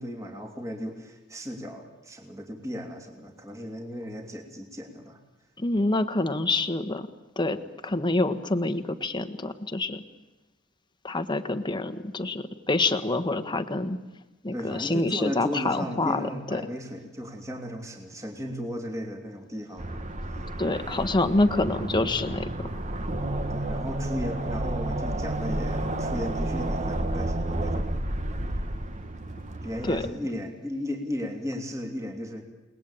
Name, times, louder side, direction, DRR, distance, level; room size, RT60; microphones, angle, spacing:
voice 1, 0.0-5.2 14.5-20.0 23.5-28.0 29.6-32.4, equal, 15° right, 3 dB, 3.0 m, -35 dB
voice 2, 5.6-7.1 7.4-7.6 7.8-10.0 11.0-14.0 14.4-16.6 20.6-22.4 29.8-30.0, left 2 dB, 20° left, 9 dB, 1.4 m, -26 dB
sound 1, 19.8-30.1, right 1 dB, 35° right, 1.5 m, -31 dB
29.5 x 20.0 x 8.9 m, 1.1 s
head